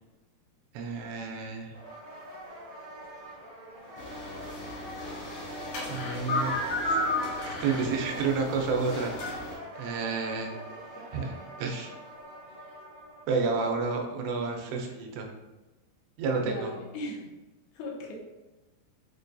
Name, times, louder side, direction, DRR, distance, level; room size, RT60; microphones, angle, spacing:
voice 1, 0.7-1.7 5.8-7.0 7.5-9.5 9.8-10.5 11.1-11.3 11.6-11.9 13.3-15.3 16.2-16.7, right 4 dB, 90° right, 2 dB, 2.8 m, -30 dB
sound 1, 1.7-13.5, right 1 dB, 55° right, 1.7 m, -45 dB
sound 2, 4.0-9.5, left 1 dB, 60° left, 2.3 m, -33 dB
voice 2, 16.3-17.3 17.7-18.1, left 1 dB, 85° left, -2 dB, 2.8 m, -38 dB
6.9 x 2.6 x 2.2 m, 1.1 s
omnidirectional pair, 4.7 m